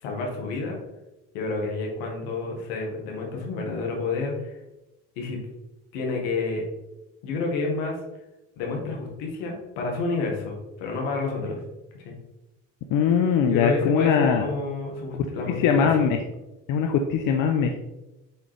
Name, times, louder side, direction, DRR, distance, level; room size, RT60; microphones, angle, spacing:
voice 1, 0.0-0.8 1.3-4.6 5.2-5.4 5.9-6.7 7.2-8.0 8.6-11.6 12.0-12.1 13.5-16.1, left 3 dB, 90° left, 1 dB, 1.7 m, -29 dB
voice 2, 12.9-14.5 15.6-16.2 16.7-17.9, left 7 dB, 65° left, 4 dB, 0.7 m, -21 dB
7.2 x 3.8 x 3.4 m, 0.99 s
supercardioid pair, 85°, 35 cm